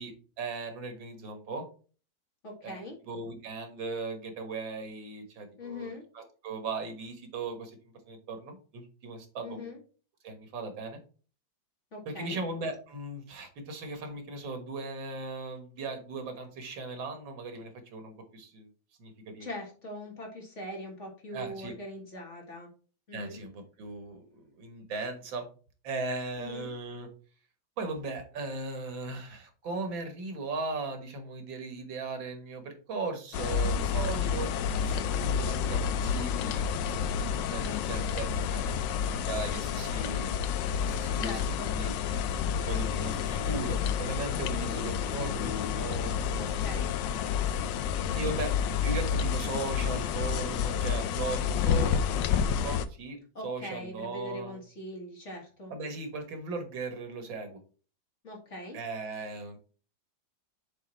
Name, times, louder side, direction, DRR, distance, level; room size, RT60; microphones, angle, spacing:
voice 1, 0.0-1.7 2.6-7.8 8.1-9.7 10.2-11.0 12.1-18.7 19.0-19.5 21.3-21.7 23.1-25.5 25.8-27.1 27.8-34.5 34.8-37.2 37.5-38.7 39.1-41.9 42.7-46.6 48.1-48.5 48.8-54.6 55.7-57.6 58.7-59.6, right 3 dB, 75° right, 6 dB, 2.1 m, -38 dB
voice 2, 2.4-3.0 5.6-6.0 9.4-9.8 11.9-12.4 19.4-22.7 23.1-23.4 26.4-26.7 33.6-33.9 41.2-41.7 44.5-44.8 46.4-46.9 48.0-48.3 53.3-55.7 58.2-58.8, left 1 dB, 40° left, 0 dB, 2.2 m, -41 dB
sound 1, 33.3-52.9, left 7 dB, 75° left, 1.2 m, -29 dB
7.3 x 4.1 x 4.2 m, 0.37 s
omnidirectional pair, 2.1 m